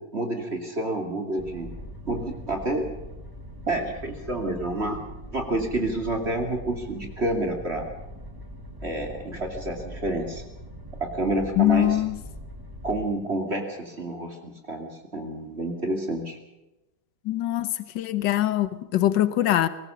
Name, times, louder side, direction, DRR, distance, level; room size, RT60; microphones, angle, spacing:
voice 1, 0.0-1.7 2.1-2.8 3.7-5.0 5.3-7.9 8.8-10.4 11.0-12.0 12.8-16.4, right 2 dB, 35° right, 3 dB, 2.7 m, -29 dB
sound 1, 1.4-13.1, equal, 10° right, 2.3 m, -41 dB
voice 2, 11.6-12.1 17.3-19.7, left 13 dB, 85° left, 13 dB, 1.6 m, -23 dB
22.0 x 18.5 x 6.7 m, 0.98 s
omnidirectional pair, 1.9 m